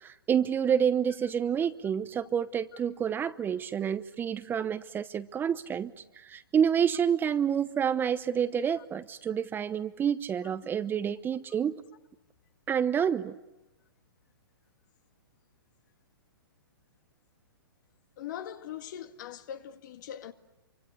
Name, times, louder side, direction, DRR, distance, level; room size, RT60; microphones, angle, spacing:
voice 1, 0.0-11.8 12.7-13.3, right 8 dB, 15° right, 0.9 m, -28 dB
voice 2, 18.2-20.3, left 10 dB, 50° left, 2.0 m, -41 dB
28.0 x 24.5 x 8.2 m
hypercardioid pair, 120°, 12 cm